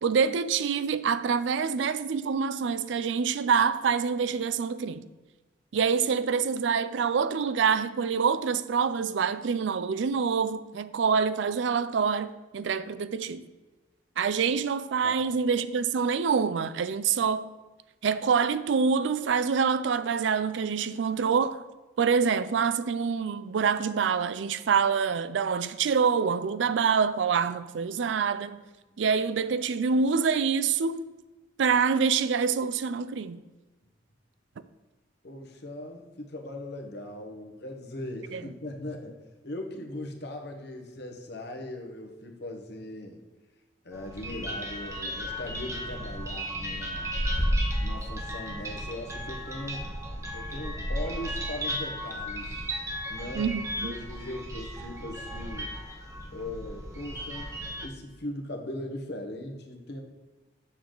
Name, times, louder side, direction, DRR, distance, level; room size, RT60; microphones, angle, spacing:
voice 1, 0.0-5.1 5.7-13.4 14.2-17.4 18.0-21.6 22.0-28.6 29.0-31.1 31.6-33.4 38.3-38.4 53.4-53.9, right 6 dB, 75° right, 0.4 m, -26 dB
voice 2, 35.2-39.2 39.4-43.2 43.8-47.1 47.8-49.8 50.3-52.6 53.1-55.7 56.3-57.5 57.8-60.0, left 1 dB, 60° left, 1.2 m, -39 dB
sound 1, 43.9-57.9, equal, 15° right, 1.0 m, -34 dB
7.1 x 6.6 x 3.8 m
head